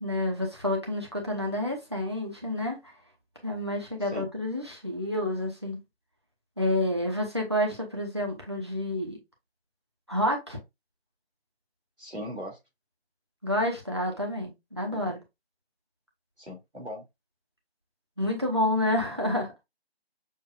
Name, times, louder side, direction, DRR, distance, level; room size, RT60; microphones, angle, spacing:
voice 1, 0.0-2.8 3.4-5.8 6.6-9.2 10.1-10.6 13.4-15.2 18.2-19.5, left 1 dB, 25° right, 0.8 m, -29 dB
voice 2, 12.0-12.6 14.9-15.1 16.4-17.0, equal, 85° right, 2.5 m, -39 dB
6.4 x 2.5 x 2.3 m
figure-of-eight pair, 170°, 33 cm